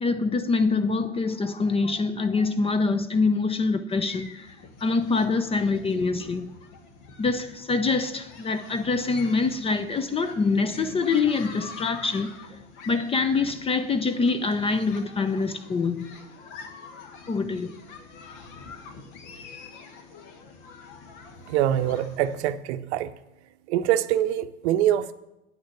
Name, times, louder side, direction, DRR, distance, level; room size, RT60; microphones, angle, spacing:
voice 1, 0.0-4.5 4.8-6.5 7.2-12.3 12.9-16.1 17.3-17.7, left 4 dB, 15° left, 0.5 m, -25 dB
sound 1, 3.9-22.5, left 4 dB, 60° left, 1.6 m, -45 dB
voice 2, 21.5-23.1 23.7-25.1, right 11 dB, 60° right, 0.7 m, -24 dB
9.5 x 6.3 x 7.0 m
hypercardioid pair, 95°, 37 cm